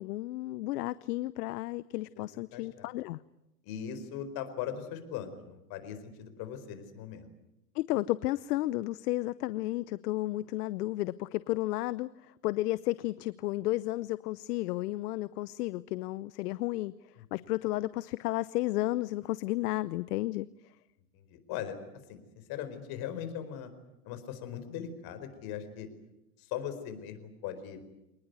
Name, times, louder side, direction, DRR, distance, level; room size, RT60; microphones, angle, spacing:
voice 1, 0.0-3.2 7.7-12.1 12.4-16.9 17.3-20.5, left 17 dB, 70° left, 17 dB, 0.8 m, -32 dB
voice 2, 2.5-2.9 3.6-7.3 21.1-21.8 22.1-22.2 22.5-23.7 24.0-25.9 26.4-27.8, left 9 dB, 50° left, 9 dB, 4.7 m, -39 dB
26.0 x 20.0 x 9.4 m, 0.92 s
hypercardioid pair, 115°, 48 cm